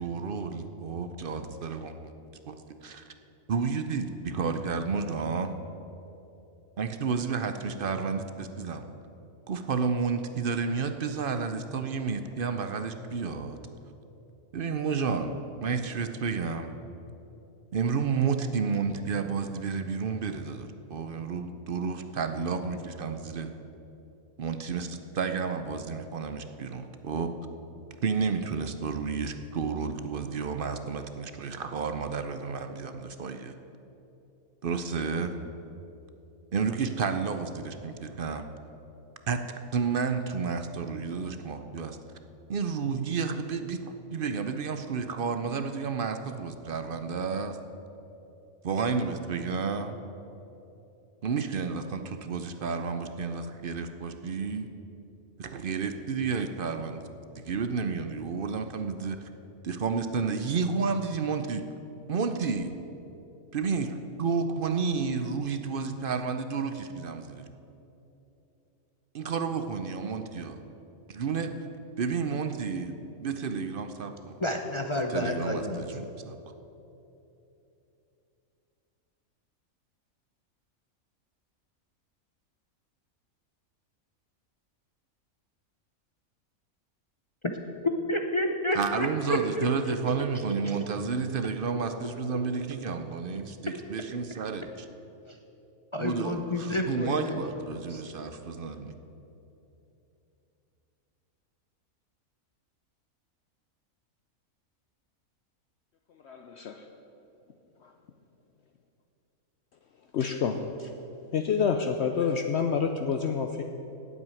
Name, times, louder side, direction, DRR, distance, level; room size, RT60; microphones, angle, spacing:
voice 1, 0.0-1.9 2.5-2.6 2.8-3.1 3.5-5.5 6.8-8.8 9.5-13.6 14.5-15.3 15.6-16.7 17.7-23.5 24.4-27.3 28.0-33.5 34.6-35.3 36.5-38.4 39.3-39.4 39.7-42.0 42.5-43.8 44.1-47.6 48.6-50.0 51.2-54.7 55.4-57.0 57.4-59.2 59.6-61.6 62.1-62.7 63.5-67.5 69.1-70.6 71.1-71.5 72.0-74.3 75.1-76.4 88.7-94.7 96.0-99.0, right 5 dB, 50° right, 8 dB, 0.7 m, -31 dB
voice 2, 74.4-75.8 88.1-89.9 90.6-90.8 95.3-95.4 95.9-98.0, left 1 dB, 35° left, 3 dB, 0.4 m, -30 dB
voice 3, 106.2-106.9 107.8-107.9 110.1-110.9 111.3-113.6, left 6 dB, 60° left, 6 dB, 0.8 m, -28 dB
8.9 x 8.1 x 9.2 m, 2.9 s
omnidirectional pair, 1.4 m